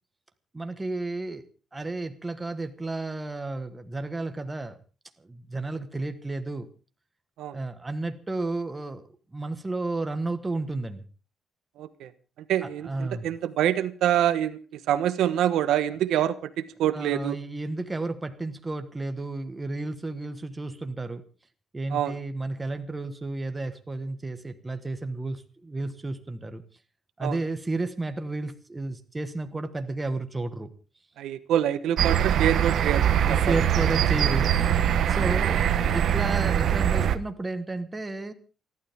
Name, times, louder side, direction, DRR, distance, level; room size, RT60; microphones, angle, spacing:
voice 1, 0.5-1.4 1.7-4.8 5.2-6.7 7.5-9.0 9.3-11.0 12.6-13.3 16.9-21.2 21.7-26.6 27.2-30.7 33.2-34.5 35.1-38.3, right 2 dB, 15° right, 8 dB, 1.3 m, -32 dB
voice 2, 11.8-12.1 12.5-14.6 14.9-17.4 21.9-22.1 27.2-27.4 31.2-33.6 35.2-35.3, right 11 dB, 85° right, 11 dB, 1.2 m, -26 dB
sound 1, 32.0-37.2, right 9 dB, 55° right, 1.0 m, -23 dB
28.5 x 12.0 x 3.6 m, 0.36 s
cardioid pair, 170°, 0 cm